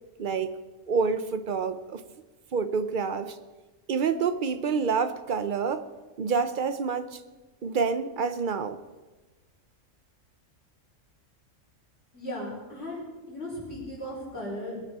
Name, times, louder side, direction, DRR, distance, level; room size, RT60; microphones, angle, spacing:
voice 1, 0.2-0.5 0.9-2.0 2.5-3.4 3.9-5.9 6.2-7.2 7.6-8.8, right 5 dB, 50° right, 0.7 m, -27 dB
voice 2, 12.1-15.0, left 1 dB, 55° left, 5.9 m, -37 dB
21.0 x 9.5 x 4.2 m
omnidirectional pair, 1.3 m